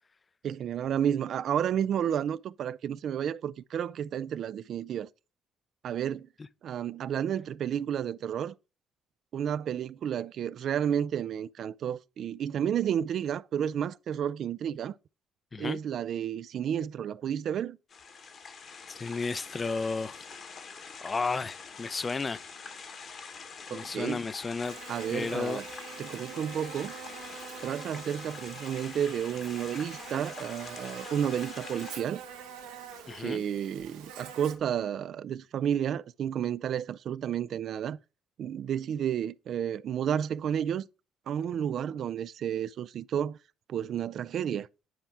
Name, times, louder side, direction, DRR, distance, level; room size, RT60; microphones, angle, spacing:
voice 1, 0.4-5.1 5.8-6.3 6.6-8.6 9.3-14.9 15.6-17.8 23.7-24.2 24.9-25.6 26.0-27.0 27.6-32.2 33.2-38.0 38.4-40.9 41.3-43.4 43.7-44.7, right 9 dB, 60° right, 0.3 m, -31 dB
sound 1, 17.9-32.0, left 5 dB, 55° left, 1.2 m, -45 dB
voice 2, 18.9-20.2 21.0-22.4 23.7-24.8 25.1-25.6 33.1-33.4, left 4 dB, 35° left, 0.4 m, -33 dB
Buzz, 24.6-34.6, right 7 dB, 85° right, 1.1 m, -45 dB
9.2 x 4.4 x 3.6 m
hypercardioid pair, 55°, 0 cm